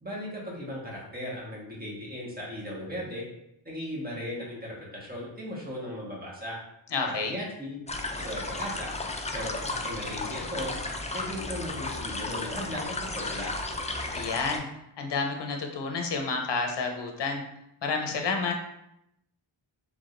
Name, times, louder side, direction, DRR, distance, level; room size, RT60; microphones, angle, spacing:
voice 1, 0.0-3.2 3.6-6.6 7.0-7.8 8.2-8.9 9.3-10.8 11.1-13.5, equal, 20° right, -5 dB, 1.4 m, -37 dB
voice 2, 6.9-7.4 14.1-14.6 15.0-17.4 17.8-18.5, left 4 dB, 65° left, 3 dB, 0.8 m, -30 dB
sound 1, 7.9-14.6, left 2 dB, 15° left, 0.3 m, -34 dB
4.8 x 3.5 x 2.6 m, 0.82 s
wide cardioid pair, 120°, 47 cm